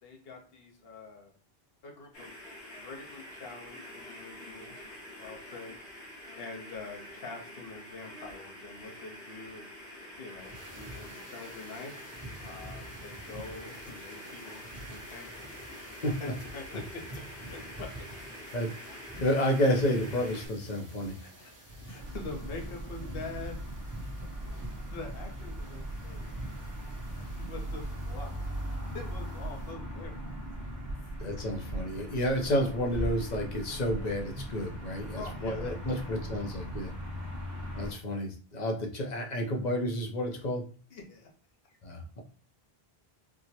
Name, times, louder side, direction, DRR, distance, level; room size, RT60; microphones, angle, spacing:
voice 1, 0.0-1.4 1.8-2.3 2.8-4.9 5.2-5.7 6.3-11.9 12.4-15.5 16.2-17.9 18.5-18.6 21.2-21.5 21.8-23.6 24.6-26.3 27.1-28.4 28.7-30.1 35.1-36.1 40.9-41.3 41.7-41.8, left 3 dB, 70° left, 1 dB, 1.1 m, -45 dB
sound 1, 2.1-20.5, left 1 dB, 85° left, 1.5 m, -46 dB
Wind and Bamboo Trees, 10.4-29.7, right 1 dB, 20° right, 0.7 m, -48 dB
voice 2, 19.2-21.1 31.2-36.9 37.7-40.6 41.8-42.2, equal, 50° left, 2 dB, 0.8 m, -30 dB
sound 2, 22.0-37.9, equal, 45° right, 1.0 m, -39 dB
4.4 x 2.1 x 2.8 m, 0.41 s
omnidirectional pair, 1.0 m